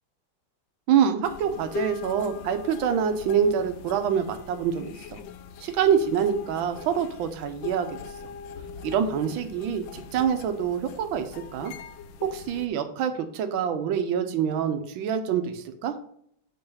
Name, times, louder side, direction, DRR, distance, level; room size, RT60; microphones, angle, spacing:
voice 1, 0.9-5.2 5.6-8.0 8.8-11.7 12.2-15.9, right 8 dB, 80° right, 8 dB, 1.5 m, -26 dB
sound 1, 1.2-12.7, left 6 dB, 80° left, 1.3 m, -41 dB
7.8 x 3.2 x 5.6 m, 0.65 s
omnidirectional pair, 2.2 m